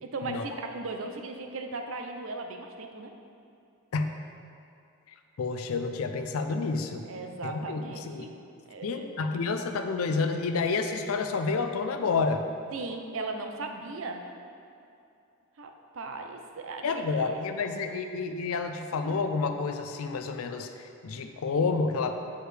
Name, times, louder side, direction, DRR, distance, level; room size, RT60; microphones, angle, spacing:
voice 1, 0.0-3.1 7.0-8.3 8.7-9.1 12.7-14.3 15.6-17.7, right 3 dB, 65° right, 4 dB, 0.5 m, -38 dB
voice 2, 5.4-7.0 7.4-8.3 8.8-12.4 16.8-22.1, left 4 dB, 75° left, 7 dB, 0.4 m, -29 dB
8.3 x 4.6 x 3.3 m, 2.6 s
head